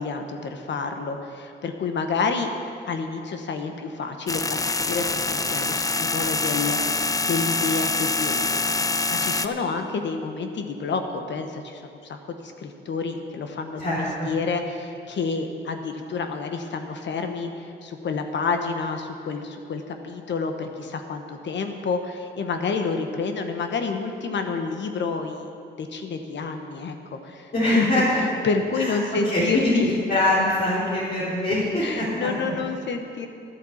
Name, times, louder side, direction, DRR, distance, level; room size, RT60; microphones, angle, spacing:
voice 1, 0.0-2.5 2.9-8.6 9.1-25.5 25.8-28.0 28.4-29.9 31.8-33.3, left 4 dB, 65° left, 5 dB, 1.2 m, -29 dB
sound 1, 4.3-9.5, left 3 dB, 15° left, 0.5 m, -25 dB
voice 2, 13.8-14.3 27.5-28.2 28.7-29.0 29.2-29.7 30.1-32.3, left 1 dB, 50° left, -9 dB, 3.2 m, -23 dB
11.5 x 8.8 x 7.1 m, 2.4 s
cardioid pair, 85°, 20 cm